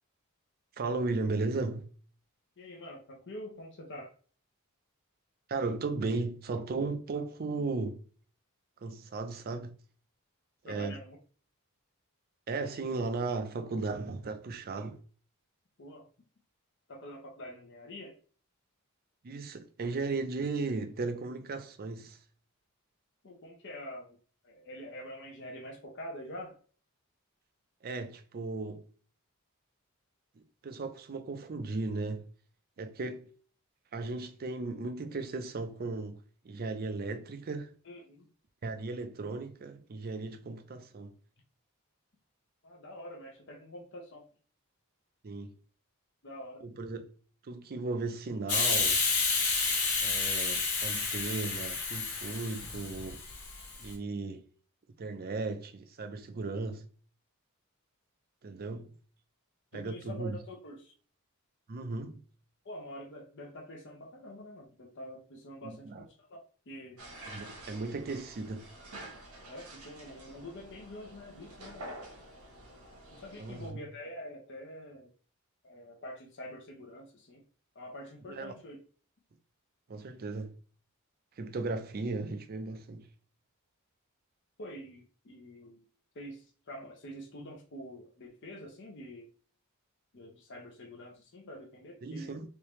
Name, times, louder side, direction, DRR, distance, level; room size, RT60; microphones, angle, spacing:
voice 1, 0.8-1.9 5.5-8.0 8.8-9.7 10.6-11.0 12.5-15.0 19.2-22.2 27.8-28.8 30.6-32.3 32.8-33.3 33.9-36.2 36.4-37.7 38.6-41.1 45.2-45.5 46.6-47.1 47.4-49.0 50.0-53.2 53.8-54.4 55.0-56.8 58.4-58.9 59.7-60.4 61.7-62.2 65.6-66.0 67.2-68.7 73.4-73.8 78.3-78.6 79.9-80.6 81.4-83.1 92.0-92.4, right 3 dB, 45° right, 0.5 m, -36 dB
voice 2, 2.6-4.1 10.6-11.2 15.8-16.1 16.9-18.1 23.2-24.2 24.4-26.6 37.8-38.3 42.6-44.3 46.2-46.7 59.7-60.9 62.6-67.0 69.5-71.9 73.1-75.1 75.6-77.4 77.7-78.8 84.6-85.8 86.1-89.3 90.1-92.4, equal, 55° left, 0.7 m, -46 dB
Hiss, 48.5-53.9, left 4 dB, 80° left, 1.3 m, -30 dB
sound 1, 67.0-73.7, right 1 dB, 80° right, 1.1 m, -48 dB
3.4 x 2.7 x 3.0 m
head